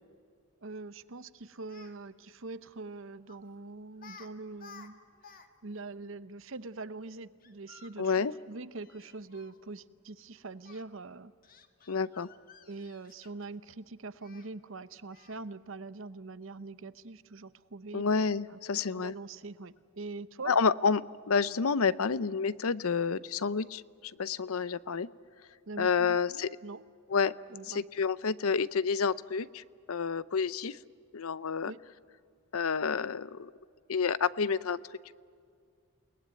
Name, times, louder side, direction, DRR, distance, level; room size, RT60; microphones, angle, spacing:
voice 1, 0.6-5.0 5.6-11.3 12.7-18.0 18.5-18.6 18.9-20.5 25.7-26.8 27.5-27.8 31.6-31.8, right 3 dB, 60° right, 14 dB, 0.8 m, -43 dB
Speech, 1.7-1.9 3.3-3.5 4.0-4.3 4.5-5.5 5.7-5.8 7.4-9.6 10.6-10.8 11.4-13.6 14.2-14.5 15.1-15.5, left 5 dB, 40° left, 1.6 m, -55 dB
voice 2, 8.0-8.3 11.9-12.3 17.9-19.1 20.5-25.1 25.8-26.5 27.1-27.3 27.7-30.8 31.1-31.7 32.5-33.5 33.9-34.8 35.1-35.2, left 5 dB, 80° left, 17 dB, 0.6 m, -29 dB
29.0 x 19.5 x 9.5 m, 2.2 s
head